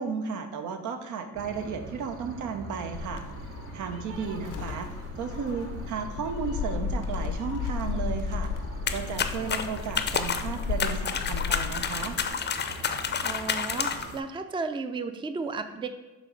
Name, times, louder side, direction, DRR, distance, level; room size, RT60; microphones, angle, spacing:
voice 1, 0.0-3.2 3.7-4.9 5.2-8.5 8.9-12.2, right 5 dB, 80° right, 6 dB, 0.8 m, -34 dB
sound 1, 1.3-14.2, right 3 dB, 45° right, 0.7 m, -43 dB
Gull seagull, 2.9-12.3, left 5 dB, 85° left, 0.7 m, -34 dB
sound 2, 8.9-14.2, left 6 dB, 35° left, 0.5 m, -30 dB
voice 2, 13.2-15.9, right 4 dB, 15° right, 9 dB, 0.4 m, -34 dB
6.5 x 3.1 x 5.2 m, 1.1 s
cardioid pair, 90°, 30 cm